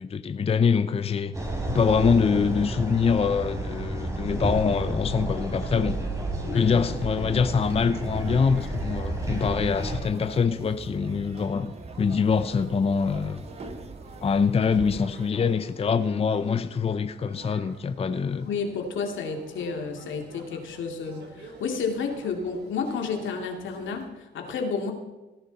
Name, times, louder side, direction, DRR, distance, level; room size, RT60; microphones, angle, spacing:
voice 1, 0.0-1.3 1.7-6.0 6.5-13.4 14.2-18.5, left 6 dB, 30° left, 10 dB, 0.6 m, -24 dB
sound 1, 1.3-10.0, right 1 dB, 15° right, 3.3 m, -31 dB
sound 2, 4.4-24.1, right 2 dB, 55° right, 3.5 m, -48 dB
voice 2, 6.4-6.7 18.5-24.9, left 5 dB, 75° left, 4 dB, 2.5 m, -31 dB
sound 3, 7.5-15.3, right 3 dB, 30° right, 1.5 m, -43 dB
18.0 x 10.5 x 4.1 m, 1.1 s
cardioid pair, 90°, 20 cm